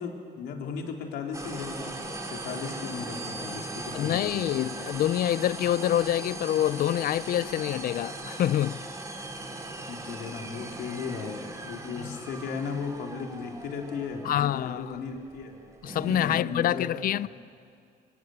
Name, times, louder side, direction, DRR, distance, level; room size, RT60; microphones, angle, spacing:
voice 1, 0.0-2.0 2.3-4.4 9.9-15.6 16.2-17.3, left 5 dB, 75° left, 3.9 m, -36 dB
sound 1, 1.3-16.4, right 2 dB, 20° right, 3.4 m, -39 dB
voice 2, 3.9-8.8 12.0-12.2 14.2-15.0 15.8-17.3, left 12 dB, 60° left, 0.6 m, -26 dB
27.0 x 25.5 x 8.0 m
cardioid pair, 110°, 17 cm